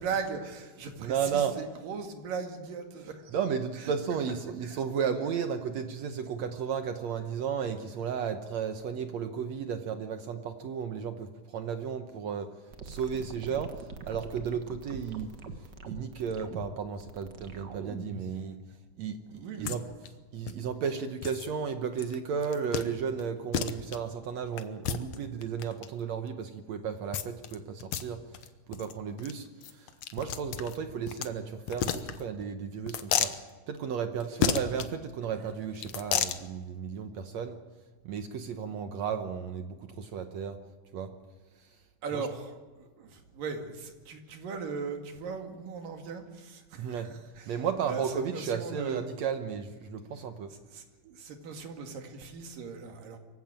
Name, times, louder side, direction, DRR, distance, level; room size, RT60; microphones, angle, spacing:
voice 1, 0.0-3.4 3.8-3.9 4.6-4.8 19.3-19.7 35.4-35.5 42.0-49.1 50.5-53.2, right 5 dB, 80° right, 4 dB, 3.8 m, -39 dB
voice 2, 1.0-1.6 3.3-12.5 12.8-15.3 15.9-18.6 19.0-19.8 20.3-28.2 28.7-33.3 33.7-37.6 38.0-40.6 40.9-41.1 41.6-41.7 46.7-47.1 47.5-50.5, right 7 dB, 65° right, 7 dB, 2.0 m, -34 dB
sound 1, 12.7-18.3, right 3 dB, 45° right, 1.4 m, -43 dB
sound 2, 19.7-19.8 20.0-20.1 20.5-20.6 21.2-21.5 22.0-22.2 22.4-22.9 23.2-23.3 23.5-24.0 24.6-25.9 27.1-27.5 27.8-28.0 28.3-28.5 28.7-28.9 29.2-29.3 29.6-31.3 31.7-32.4 32.9-33.4 34.4-34.9 35.8-36.4, left 9 dB, 65° left, 1.9 m, -31 dB
24.5 x 15.5 x 9.0 m, 1.3 s
omnidirectional pair, 3.8 m